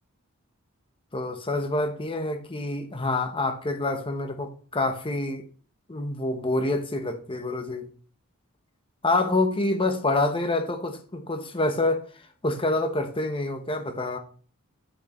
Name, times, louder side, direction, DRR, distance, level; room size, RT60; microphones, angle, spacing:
voice 1, 1.1-5.5 5.9-7.9 9.0-12.0 12.4-14.2, left 2 dB, 25° left, 1.0 m, -27 dB
8.5 x 6.4 x 3.1 m
head